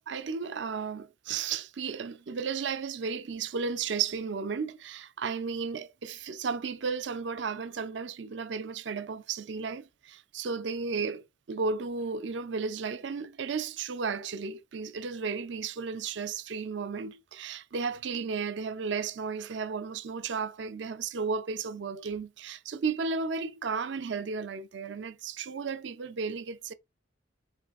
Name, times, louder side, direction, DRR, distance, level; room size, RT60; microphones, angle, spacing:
voice 1, 0.0-26.7, right 5 dB, 70° right, 0.5 m, -34 dB
4.6 x 3.7 x 2.4 m
head